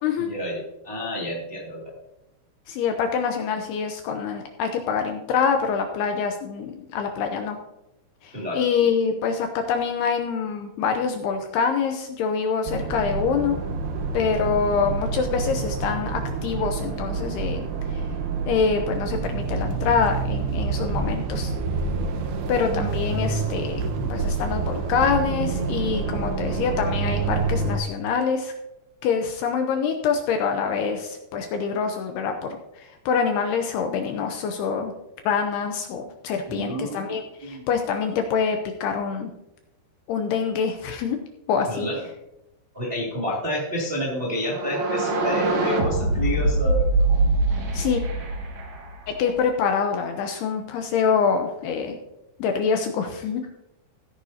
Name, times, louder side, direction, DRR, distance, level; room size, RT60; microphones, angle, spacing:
voice 1, 0.2-1.9 8.3-8.6 20.6-20.8 36.5-37.0 37.4-37.6 41.7-42.0 42.7-46.9, equal, 25° right, -4 dB, 1.3 m, -29 dB
voice 2, 2.7-7.6 8.2-13.6 14.1-17.6 17.9-18.0 18.5-21.5 22.5-28.5 29.0-34.9 35.3-39.3 40.1-41.2 41.5-41.9 47.7-48.0 49.1-52.0 52.4-53.4, left 6 dB, 75° left, 5 dB, 2.5 m, -25 dB
sound 1, 12.7-27.8, right 4 dB, 75° right, 2.9 m, -27 dB
sound 2, 44.4-49.3, right 2 dB, 55° right, 2.1 m, -23 dB
16.5 x 9.8 x 2.8 m, 0.90 s
omnidirectional pair, 5.3 m